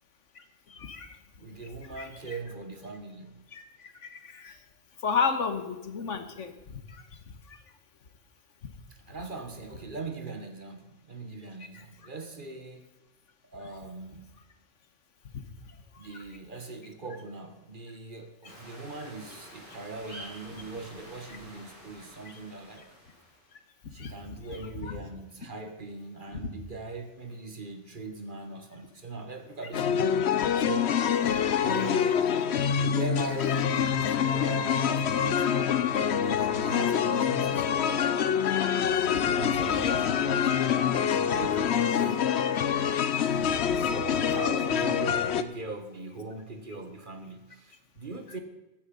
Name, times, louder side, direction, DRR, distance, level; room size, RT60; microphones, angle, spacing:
voice 1, 0.3-1.2 1.9-2.4 3.5-4.6 5.0-7.2 7.5-7.6 8.6-8.7 11.7-11.8 15.6-15.8 16.1-16.2 22.2-22.4 23.5-23.6 24.0-25.0 31.2-31.8 39.7-39.9 43.4-43.9, left 5 dB, 85° left, 9 dB, 1.7 m, -35 dB
voice 2, 1.4-3.5 8.9-12.9 13.4-14.3 16.0-22.9 23.9-30.2 30.6-31.0 31.5-32.3 32.7-38.1 39.1-42.3 43.7-48.4, right 3 dB, 45° right, 7 dB, 1.6 m, -40 dB
sound 1, 18.4-23.5, right 1 dB, 30° right, 5.5 m, -49 dB
sound 2, 29.7-45.4, left 8 dB, 65° left, 1.0 m, -26 dB
14.5 x 9.7 x 5.4 m, 1.1 s
omnidirectional pair, 1.2 m